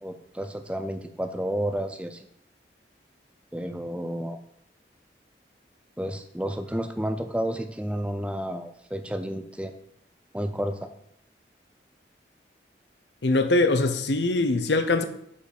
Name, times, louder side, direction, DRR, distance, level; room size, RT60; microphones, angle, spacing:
voice 1, 0.0-2.3 3.5-4.4 6.0-9.7 10.3-10.9, equal, 5° right, 0.5 m, -31 dB
voice 2, 13.2-15.0, left 2 dB, 80° left, 0.8 m, -22 dB
8.3 x 5.3 x 5.4 m
head